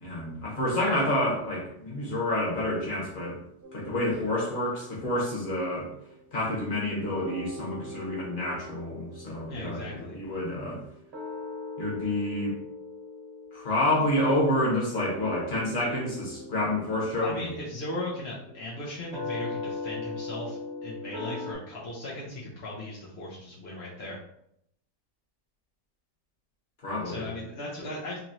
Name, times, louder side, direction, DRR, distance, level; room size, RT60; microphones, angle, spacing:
voice 1, 0.0-3.4 3.7-5.9 6.3-10.8 11.8-12.5 13.5-17.5 26.8-27.3, left 1 dB, 30° left, -5 dB, 1.2 m, -28 dB
sound 1, 3.6-6.9 7.1-21.5, left 2 dB, 40° right, 1.1 m, -41 dB
voice 2, 9.5-10.2 17.2-24.2 27.0-28.2, left 1 dB, 55° left, -6 dB, 0.7 m, -37 dB
3.9 x 2.9 x 2.9 m, 0.74 s
omnidirectional pair, 2.0 m